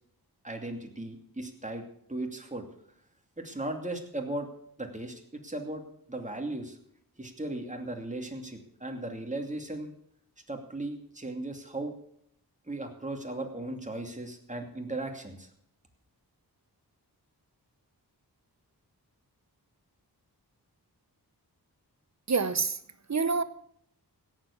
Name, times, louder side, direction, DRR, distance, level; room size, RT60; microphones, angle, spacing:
voice 1, 0.4-2.6 3.4-4.5 4.8-6.8 7.2-9.9 10.5-11.9 12.6-15.5, right 2 dB, 20° right, 3 dB, 2.6 m, -37 dB
voice 2, 22.3-22.8 23.1-23.4, right 4 dB, 45° right, 13 dB, 1.0 m, -26 dB
17.0 x 7.5 x 7.2 m, 0.69 s
wide cardioid pair, 70°, 39 cm